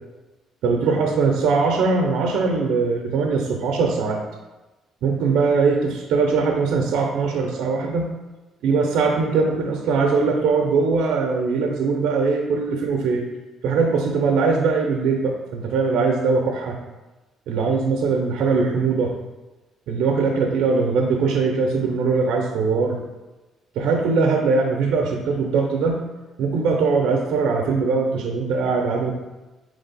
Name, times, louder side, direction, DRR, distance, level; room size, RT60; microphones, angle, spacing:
voice 1, 0.6-4.2 5.0-8.1 8.6-13.2 13.6-16.8 17.5-19.1 19.9-23.0 23.8-26.0 26.4-29.1, right 4 dB, 80° right, 1 dB, 0.5 m, -21 dB
3.7 x 3.2 x 3.9 m, 1.1 s
cardioid pair, 95°, 0 cm